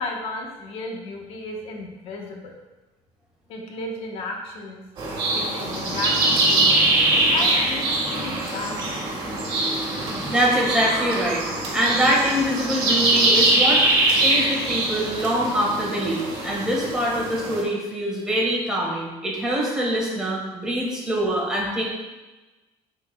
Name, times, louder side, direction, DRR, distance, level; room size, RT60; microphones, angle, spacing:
voice 1, 0.0-2.5 3.5-4.8 5.3-6.7 7.3-9.0, left 2 dB, 55° left, 0 dB, 1.1 m, -33 dB
sound 1, 5.0-17.6, right 2 dB, 40° right, 1.6 m, -23 dB
voice 2, 10.0-11.5 11.7-21.8, equal, 5° right, -4 dB, 1.5 m, -24 dB
9.7 x 4.4 x 2.2 m, 1.1 s
cardioid pair, 170°, 12 cm